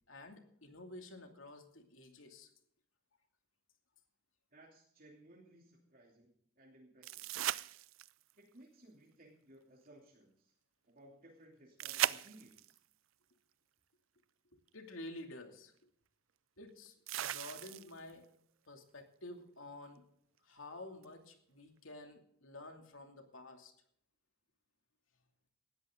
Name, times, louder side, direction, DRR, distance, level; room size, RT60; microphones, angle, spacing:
voice 1, 0.1-2.5 14.7-15.7 16.6-18.3 18.7-20.0 20.4-23.7, left 2 dB, 80° left, 4 dB, 2.7 m, -51 dB
voice 2, 4.5-7.3 8.4-10.5 10.8-12.8, right 1 dB, 45° right, -2 dB, 3.0 m, -60 dB
Water on concrete, 7.0-8.3 11.8-12.8 14.7-14.8 17.1-18.1 21.0-21.1, right 12 dB, 75° right, 0.5 m, -37 dB
19.0 x 13.5 x 3.8 m, 0.70 s
head